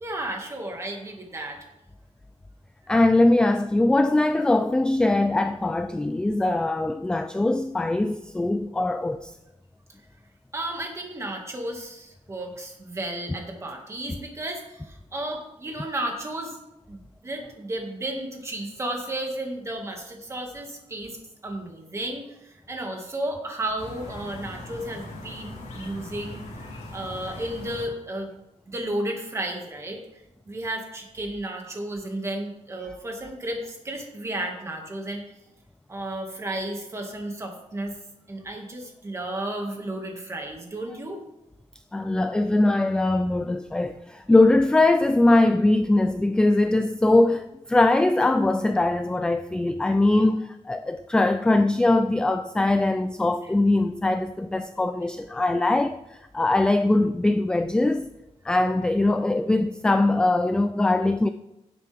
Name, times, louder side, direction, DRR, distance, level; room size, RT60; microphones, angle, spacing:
voice 1, 0.0-1.6 10.5-16.6 16.9-21.2 21.4-26.4 26.9-28.4 28.7-30.0 30.5-35.2 35.9-37.9 38.3-41.2, right 1 dB, 25° right, 1.9 m, -33 dB
voice 2, 2.9-9.3 41.9-58.1 58.4-61.3, left 2 dB, 5° left, 0.3 m, -21 dB
sound 1, 23.8-27.9, left 2 dB, 90° left, 3.3 m, -40 dB
16.5 x 7.8 x 3.5 m
wide cardioid pair, 175°, 12 cm